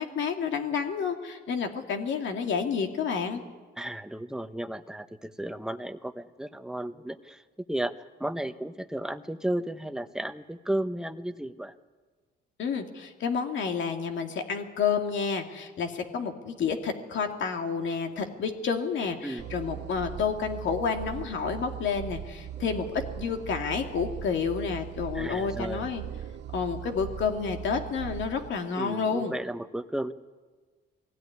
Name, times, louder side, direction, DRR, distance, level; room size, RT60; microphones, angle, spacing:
voice 1, 0.0-3.4 12.6-26.0 26.5-29.3, left 6 dB, 70° left, 4 dB, 2.5 m, -30 dB
voice 2, 3.8-7.4 7.7-7.9 8.2-11.7 19.2-19.5 25.1-25.9 28.8-30.1, right 1 dB, 5° right, 9 dB, 1.1 m, -34 dB
sound 1, 19.4-28.5, right 10 dB, 65° right, 0.8 m, -39 dB
21.5 x 16.5 x 9.6 m, 1.4 s
cardioid pair, 90°, 20 cm